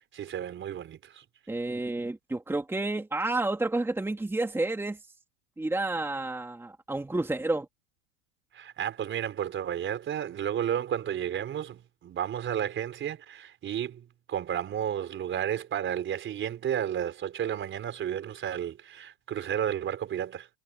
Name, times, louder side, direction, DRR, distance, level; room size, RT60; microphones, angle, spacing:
voice 1, 0.1-1.2 8.5-20.5, right 10 dB, 30° right, 4.6 m, -32 dB
voice 2, 1.5-5.0 5.6-7.7, right 2 dB, 5° right, 3.0 m, -30 dB
supercardioid pair, 130°, 41 cm